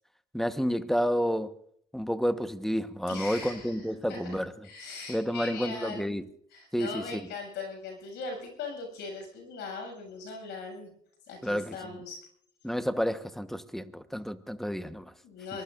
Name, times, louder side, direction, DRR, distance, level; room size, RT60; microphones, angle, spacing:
voice 1, 0.3-1.6 1.9-4.7 5.1-6.2 6.7-7.2 11.4-12.0 12.6-15.1, equal, ahead, 1.2 m, -30 dB
voice 2, 3.1-4.4 4.6-6.1 6.5-10.9 11.3-12.2 15.2-15.6, left 4 dB, 75° left, 7.3 m, -40 dB
23.5 x 20.5 x 2.6 m
supercardioid pair, 70°, 18 cm